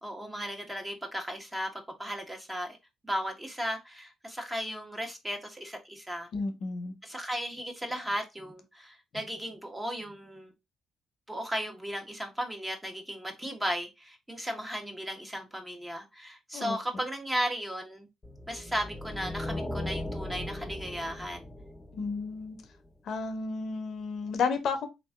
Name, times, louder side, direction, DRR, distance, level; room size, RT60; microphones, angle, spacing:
voice 1, 0.0-2.8 3.0-6.3 7.0-10.5 11.3-18.1 18.5-21.5, equal, 10° right, 1.2 m, -35 dB
voice 2, 6.3-7.0 16.5-16.8 21.9-22.6 23.0-24.9, left 4 dB, 65° left, 0.8 m, -32 dB
sound 1, 18.2-22.7, left 1 dB, 15° left, 0.6 m, -38 dB
3.6 x 2.9 x 3.6 m
cardioid pair, 90°, 0 cm